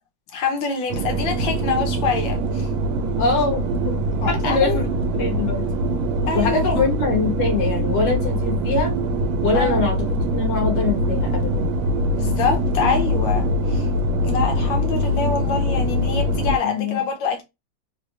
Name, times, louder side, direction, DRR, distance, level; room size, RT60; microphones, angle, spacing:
voice 1, 0.3-2.7 4.2-4.8 6.3-6.6 9.5-9.8 12.1-13.9 14.2-17.4, left 5 dB, 80° left, 1.8 m, -25 dB
sound 1, 0.9-16.6, equal, 85° right, 1.5 m, -23 dB
voice 2, 3.2-5.6 6.3-8.9 9.4-10.1 10.3-11.7 16.6-17.0, left 4 dB, 45° left, 1.6 m, -24 dB
4.0 x 3.2 x 2.6 m
omnidirectional pair, 2.1 m